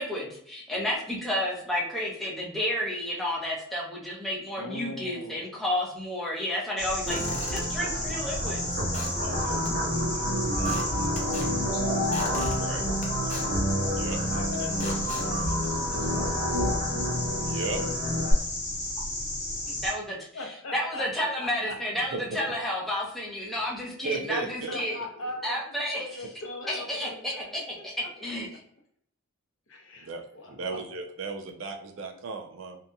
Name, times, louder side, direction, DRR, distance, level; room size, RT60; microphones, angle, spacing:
voice 1, 0.0-8.7 19.7-20.2 20.7-25.0 25.4-26.0 26.7-28.5, left 1 dB, ahead, -4 dB, 0.7 m, -31 dB
voice 2, 4.6-5.4 9.2-11.8 12.8-13.0 14.2-16.9 18.1-18.4 20.3-21.0 21.4-21.8 24.7-27.6 28.0-28.1 29.7-30.9, left 2 dB, 75° left, 2 dB, 0.7 m, -41 dB
Squeak / Wood, 6.8-16.4, left 1 dB, 35° left, 0.6 m, -41 dB
sound 1, 6.8-19.9, left 1 dB, 20° left, 1.1 m, -33 dB
sound 2, 7.1-18.3, equal, 50° right, 1.1 m, -29 dB
voice 3, 12.5-12.9 13.9-14.2 17.4-17.8 22.0-22.4 24.0-24.8 25.2-25.3 30.1-30.2 30.5-32.8, right 3 dB, 65° right, 4 dB, 0.5 m, -35 dB
2.8 x 2.6 x 2.2 m, 0.68 s
head